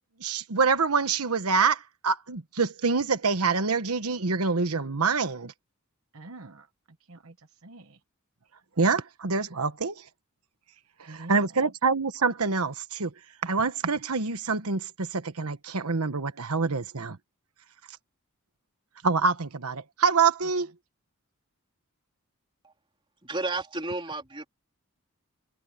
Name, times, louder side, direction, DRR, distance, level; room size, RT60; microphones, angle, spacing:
voice 1, 0.2-5.5 8.8-10.0 11.0-13.1 13.4-17.2 19.0-20.7, right 4 dB, 90° right, 1.2 m, -26 dB
voice 2, 6.1-6.7 7.1-8.0 11.1-11.6, right 2 dB, 70° right, 1.1 m, -45 dB
voice 3, 23.2-24.4, right 2 dB, 25° right, 3.5 m, -32 dB
head